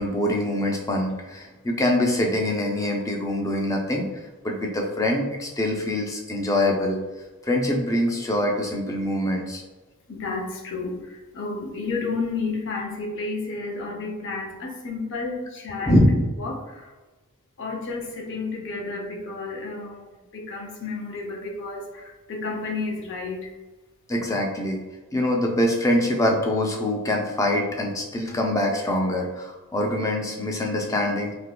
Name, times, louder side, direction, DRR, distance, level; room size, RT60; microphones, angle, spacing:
voice 1, 0.0-4.1 4.4-7.0 7.4-9.6 15.8-16.1 24.1-24.8 25.1-31.3, left 1 dB, 15° left, 1 dB, 0.4 m, -24 dB
voice 2, 10.1-16.9 17.6-20.1 20.3-23.5, left 3 dB, 60° left, 1 dB, 0.6 m, -31 dB
3.4 x 2.8 x 2.2 m, 1.2 s
head